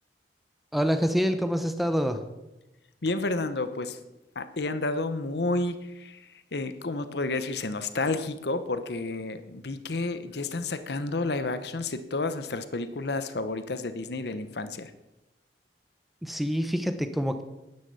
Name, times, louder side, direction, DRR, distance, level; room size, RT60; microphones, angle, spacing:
voice 1, 0.7-2.2 16.2-17.4, equal, ahead, 8 dB, 0.8 m, -26 dB
voice 2, 3.0-4.0 4.4-14.9, left 2 dB, 65° left, 11 dB, 0.9 m, -31 dB
11.5 x 9.7 x 6.9 m, 0.98 s
head